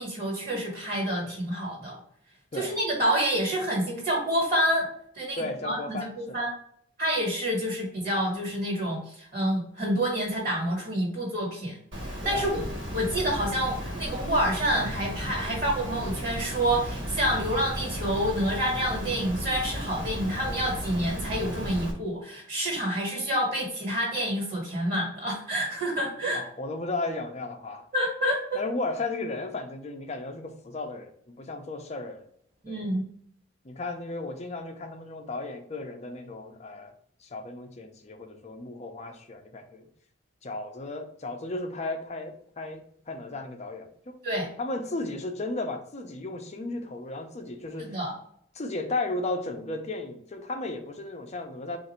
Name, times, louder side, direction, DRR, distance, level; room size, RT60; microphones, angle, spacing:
voice 1, 0.0-2.0 2.5-4.9 5.1-6.5 7.0-11.8 12.0-12.6 12.9-26.4 27.9-28.6 32.6-33.0 44.2-44.5 47.8-48.1, equal, 45° right, -4 dB, 1.5 m, -28 dB
voice 2, 5.4-6.5 12.2-12.5 26.3-27.9 28.5-32.2 32.7-32.8 33.6-36.9 37.2-39.9 40.4-44.1 44.6-48.0 48.5-51.8, left 2 dB, 35° left, 5 dB, 0.6 m, -35 dB
Water, 11.9-21.9, equal, 90° right, 1.3 m, -35 dB
3.8 x 2.5 x 4.2 m, 0.66 s
head